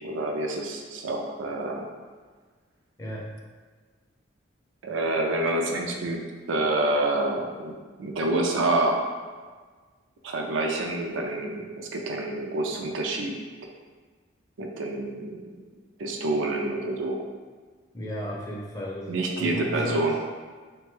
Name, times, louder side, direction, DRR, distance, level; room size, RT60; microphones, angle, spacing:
voice 1, 0.0-1.8 4.8-6.2 6.5-7.7 8.0-9.0 10.2-13.3 14.6-15.4 16.0-17.2 19.1-20.2, right 2 dB, 75° right, 1 dB, 0.4 m, -27 dB
voice 2, 3.0-3.3 17.9-20.1, equal, 15° left, -4 dB, 0.4 m, -34 dB
2.9 x 2.2 x 3.0 m, 1.5 s
head